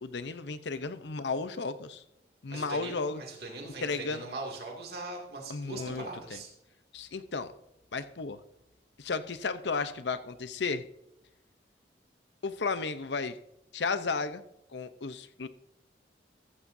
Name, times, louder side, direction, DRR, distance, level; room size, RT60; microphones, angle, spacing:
voice 1, 0.0-2.0 2.4-3.2 3.8-4.2 5.5-6.1 6.3-6.4 6.9-7.5 7.9-8.4 9.0-10.8 12.4-13.4 13.7-14.4 14.7-15.5, left 4 dB, 75° left, 12 dB, 0.7 m, -33 dB
voice 2, 2.5-6.5, right 2 dB, 60° right, -1 dB, 2.4 m, -41 dB
14.5 x 13.5 x 2.7 m, 0.84 s
head